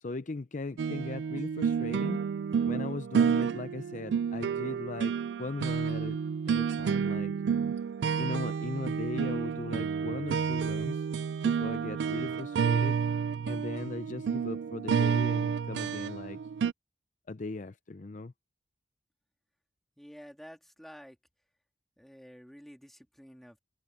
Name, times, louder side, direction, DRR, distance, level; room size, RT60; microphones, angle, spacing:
voice 1, 0.0-2.2 2.7-6.2 6.5-7.3 8.2-11.1 11.4-13.0 13.5-16.4 17.3-18.3, left 3 dB, 45° left, 0.6 m, -38 dB
sound 1, 0.8-16.7, right 6 dB, 70° right, 0.3 m, -30 dB
voice 2, 20.0-21.2 22.0-23.6, equal, ahead, 3.1 m, -50 dB
head